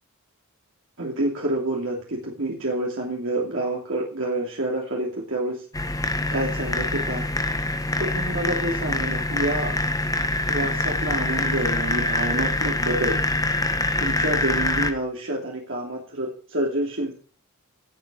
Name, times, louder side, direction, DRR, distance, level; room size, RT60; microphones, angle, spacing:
voice 1, 1.0-5.6 6.3-7.3 8.0-9.8 10.5-13.2 14.0-17.2, right 1 dB, 60° right, -1 dB, 2.9 m, -28 dB
sound 1, 5.7-14.9, left 2 dB, 15° left, 1.2 m, -25 dB
18.0 x 7.8 x 6.2 m, 0.40 s
head